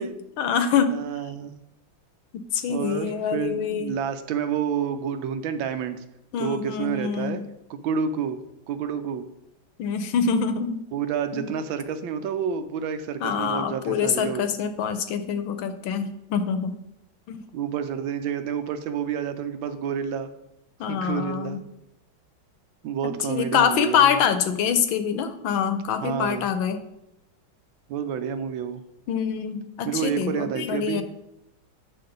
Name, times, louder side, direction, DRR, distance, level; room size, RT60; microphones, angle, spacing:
voice 1, 0.4-1.0 2.5-3.9 6.3-7.4 9.8-10.8 11.3-11.5 13.2-16.8 17.3-17.4 20.8-21.6 23.3-26.8 29.1-31.0, left 7 dB, 80° left, 9 dB, 1.4 m, -25 dB
voice 2, 0.9-1.6 2.7-6.0 6.4-7.4 7.7-8.4 8.7-9.3 10.9-14.4 17.5-20.3 20.9-21.6 22.8-24.2 26.0-26.5 27.9-28.8 29.9-31.0, right 7 dB, 75° right, 9 dB, 1.4 m, -29 dB
8.7 x 6.6 x 3.9 m, 0.85 s
omnidirectional pair, 2.2 m